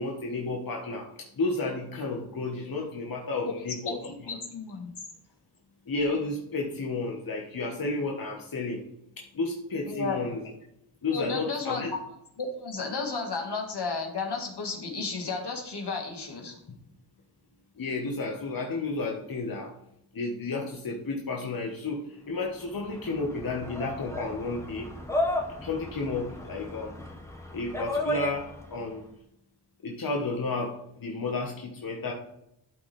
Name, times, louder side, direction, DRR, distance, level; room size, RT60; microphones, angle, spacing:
voice 1, 0.0-4.2 5.9-8.8 9.2-10.4 11.0-11.9 16.7-16.8 17.8-19.7 20.1-24.9 25.6-26.9 27.5-29.0 29.8-32.1, left 3 dB, 55° left, -1 dB, 1.2 m, -32 dB
voice 2, 4.3-4.9 9.9-10.3 11.1-11.8 12.4-16.6, left 4 dB, 70° left, 1 dB, 1.8 m, -33 dB
sound 1, 22.5-28.8, left 1 dB, 5° left, 1.3 m, -34 dB
12.0 x 4.1 x 3.3 m, 0.79 s
cardioid pair, 55°, 41 cm